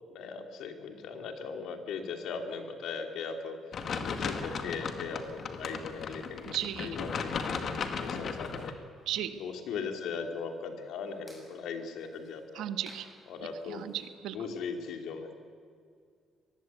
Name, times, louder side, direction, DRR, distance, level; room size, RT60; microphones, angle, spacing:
voice 1, 0.1-3.6 4.0-6.5 6.8-8.9 9.4-12.7 13.3-13.8 14.3-15.3, left 5 dB, 75° left, 5 dB, 2.9 m, -39 dB
sound 1, 3.7-8.7, left 5 dB, 45° left, 1.9 m, -36 dB
voice 2, 6.4-7.0 9.0-9.4 9.7-9.8 12.5-13.1 13.6-14.5, right 11 dB, 90° right, 10 dB, 1.5 m, -36 dB
sound 2, 9.0-14.1, equal, 10° left, 6.8 m, -60 dB
25.0 x 20.0 x 8.4 m, 2.2 s
cardioid pair, 160°, 0 cm